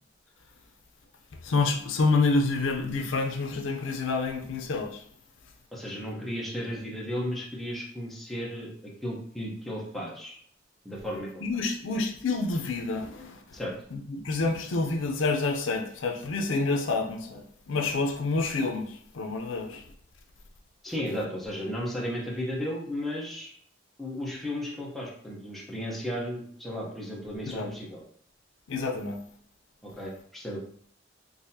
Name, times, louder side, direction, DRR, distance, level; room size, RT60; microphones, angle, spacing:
voice 1, 1.4-5.0 11.4-13.6 13.9-19.8 27.5-27.7 28.7-29.2, left 3 dB, 80° left, 4 dB, 0.5 m, -28 dB
voice 2, 5.7-10.4 10.8-11.4 13.5-13.7 20.8-23.5 24.0-28.0 29.8-30.6, equal, ahead, -5 dB, 0.7 m, -34 dB
4.0 x 2.6 x 2.7 m, 0.63 s
head